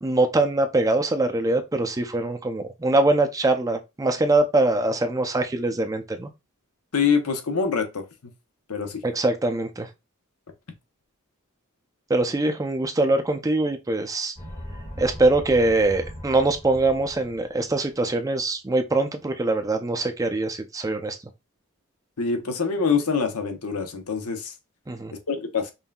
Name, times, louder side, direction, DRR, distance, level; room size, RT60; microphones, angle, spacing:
voice 1, 0.0-6.3 9.0-9.9 12.1-14.3 15.0-21.2 24.9-25.1, right 2 dB, 15° right, 0.4 m, -23 dB
voice 2, 6.9-8.0 8.7-9.0 22.2-24.5 25.3-25.7, left 5 dB, 80° left, 0.8 m, -25 dB
sound 1, 14.4-17.9, equal, 30° left, 1.7 m, -39 dB
5.3 x 2.6 x 2.2 m
head